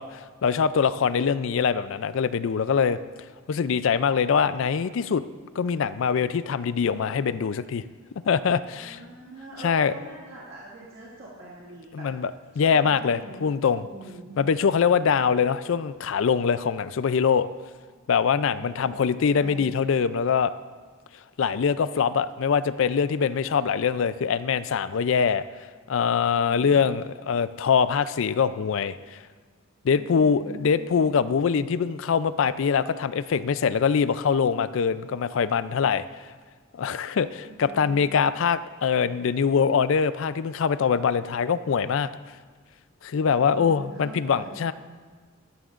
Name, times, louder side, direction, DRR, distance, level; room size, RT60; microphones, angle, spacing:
voice 1, 0.0-3.0 3.5-5.2 5.6-7.8 8.3-9.0 9.6-9.9 11.9-12.3 12.6-13.9 14.4-17.5 18.1-20.5 21.4-25.4 25.9-29.2 29.8-36.1 36.8-42.1 43.0-44.7, left 6 dB, 65° left, 14 dB, 0.4 m, -23 dB
voice 2, 8.8-12.2 12.5-13.4 13.8-14.4 18.5-19.8 29.9-30.8 37.4-38.0 43.4-44.7, right 2 dB, 55° right, -7 dB, 1.9 m, -44 dB
13.0 x 12.5 x 2.5 m, 1.5 s
head